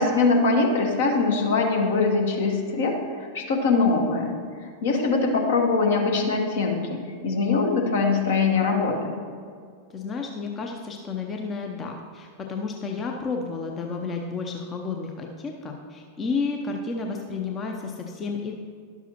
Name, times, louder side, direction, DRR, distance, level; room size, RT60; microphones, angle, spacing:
voice 1, 0.0-4.3 4.8-9.1, left 3 dB, 60° left, 1 dB, 1.2 m, -22 dB
voice 2, 9.9-18.5, left 4 dB, 25° left, 2 dB, 0.6 m, -31 dB
11.5 x 7.0 x 2.9 m, 2.1 s
figure-of-eight pair, 90°, 0 cm